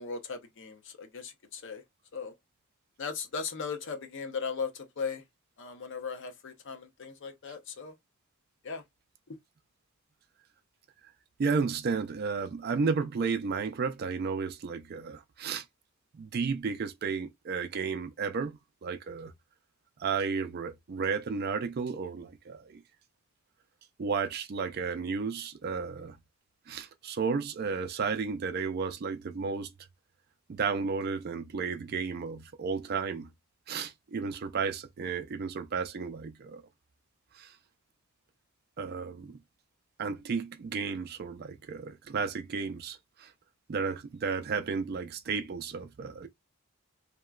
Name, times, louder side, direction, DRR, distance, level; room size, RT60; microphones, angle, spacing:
voice 1, 0.0-1.8 2.1-2.3 3.0-5.2 5.6-7.9 8.6-8.8 9.3-9.4, left 5 dB, 55° left, 0.6 m, -38 dB
voice 2, 11.4-15.6 16.1-19.3 20.0-22.8 24.0-26.2 26.7-29.7 30.5-33.3 33.7-36.6 37.3-37.6 38.8-39.4 40.0-43.3 43.7-46.3, right 5 dB, 45° right, 0.3 m, -33 dB
2.9 x 2.2 x 2.3 m
head